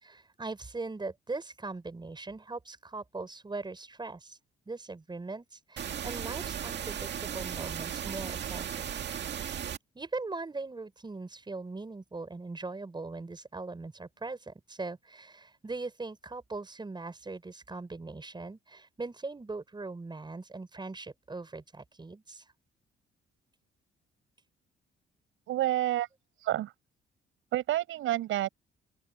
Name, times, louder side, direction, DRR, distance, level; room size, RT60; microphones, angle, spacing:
voice 1, 0.0-4.4 4.7-9.0 9.9-22.4, right 3 dB, 20° right, 6.5 m, -40 dB
sound 1, 5.8-9.8, right 9 dB, 60° right, 2.1 m, -36 dB
voice 2, 25.5-26.1 26.4-26.7 27.5-28.5, right 14 dB, 85° right, 6.2 m, -29 dB
open air
cardioid pair, 90°, 20 cm